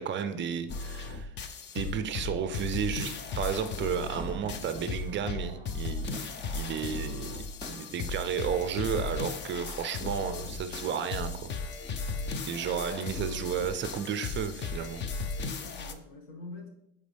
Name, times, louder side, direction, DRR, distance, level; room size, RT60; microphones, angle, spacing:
voice 1, 0.0-1.3 1.7-6.2 6.5-7.4 7.7-11.5 12.5-15.0, right 7 dB, 30° right, 10 dB, 0.5 m, -33 dB
sound 1, 0.7-15.9, left 4 dB, 30° left, 0.5 m, -36 dB
Crowd / Fireworks, 4.2-9.5 9.8-9.9, right 3 dB, 15° right, 2.1 m, -47 dB
voice 2, 12.1-13.7 15.6-16.7, left 2 dB, 85° left, 1 dB, 2.0 m, -48 dB
8.0 x 4.5 x 3.4 m, 0.80 s
cardioid pair, 130°, 38 cm